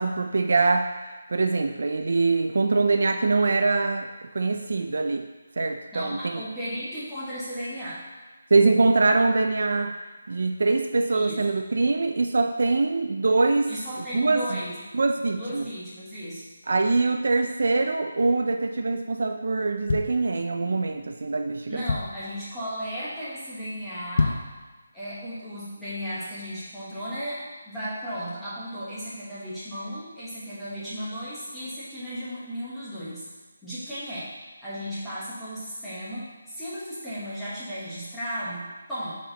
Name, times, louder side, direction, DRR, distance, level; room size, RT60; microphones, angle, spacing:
voice 1, 0.0-5.3 5.6-6.4 8.5-10.0 10.3-13.7 14.1-14.6 14.9-15.6 16.7-21.8, right 3 dB, 55° right, 7 dB, 0.3 m, -23 dB
voice 2, 5.9-8.0 11.1-11.4 13.7-14.8 15.3-16.5 21.7-24.4 24.9-33.2 33.6-34.3 34.6-39.1, equal, ahead, -14 dB, 1.2 m, -35 dB
sound 1, 19.6-20.8 21.3-21.4 21.6-22.4 22.8-23.1 23.4-23.5 24.0-24.6 25.0-25.1, left 4 dB, 40° left, 0.5 m, -28 dB
6.4 x 4.3 x 4.0 m, 1.3 s
hypercardioid pair, 175°, 0 cm